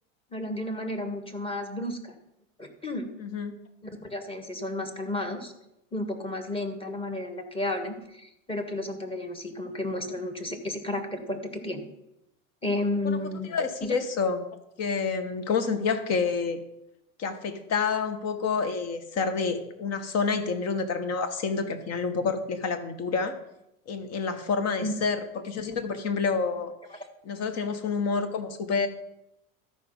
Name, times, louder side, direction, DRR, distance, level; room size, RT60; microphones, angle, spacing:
voice 1, 0.3-2.1 2.6-3.1 4.0-5.5 5.9-11.8 12.6-13.9 24.8-24.9, left 1 dB, 15° left, 4 dB, 1.5 m, -32 dB
voice 2, 3.2-3.6 13.0-13.2 13.5-14.5 14.8-16.6 17.2-23.4 23.9-26.7 27.2-28.9, left 5 dB, 40° left, 9 dB, 1.3 m, -28 dB
13.0 x 5.0 x 5.4 m, 0.86 s
hypercardioid pair, 100°, 39 cm